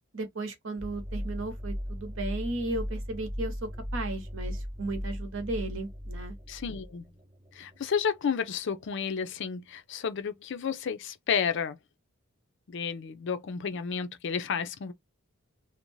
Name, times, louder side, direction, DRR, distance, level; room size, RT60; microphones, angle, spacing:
voice 1, 0.1-6.4, right 2 dB, 65° right, 0.8 m, -35 dB
sound 1, 0.8-8.0, equal, 25° right, 0.6 m, -37 dB
voice 2, 6.5-7.1 7.5-11.8 12.7-14.9, left 6 dB, 60° left, 0.4 m, -31 dB
2.6 x 2.1 x 3.0 m
head